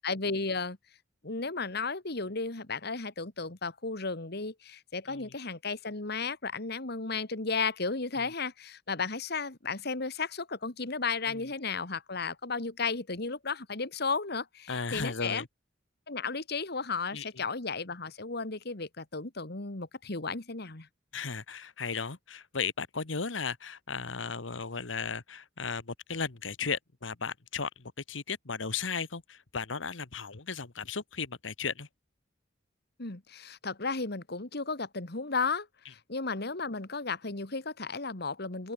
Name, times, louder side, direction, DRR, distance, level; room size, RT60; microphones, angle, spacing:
voice 1, 0.0-0.8 1.2-15.5 16.1-20.9 33.0-38.7, left 4 dB, 60° left, 2.1 m, -34 dB
voice 2, 14.7-15.5 17.1-17.3 21.1-27.7 28.1-31.9, left 5 dB, 90° left, 1.5 m, -35 dB
open air
head